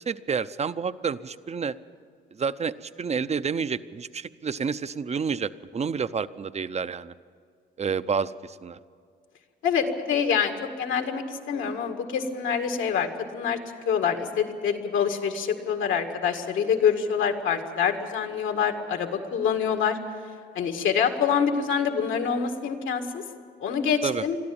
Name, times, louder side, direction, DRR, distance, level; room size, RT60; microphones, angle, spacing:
voice 1, 0.1-1.8 2.3-7.1 7.8-8.8 24.0-24.2, right 6 dB, 35° right, 14 dB, 0.6 m, -29 dB
voice 2, 9.6-13.6 13.9-20.0 20.6-23.2 23.6-24.4, left 7 dB, 80° left, 5 dB, 2.0 m, -26 dB
22.0 x 13.5 x 8.8 m, 2.1 s
cardioid pair, 90°, 20 cm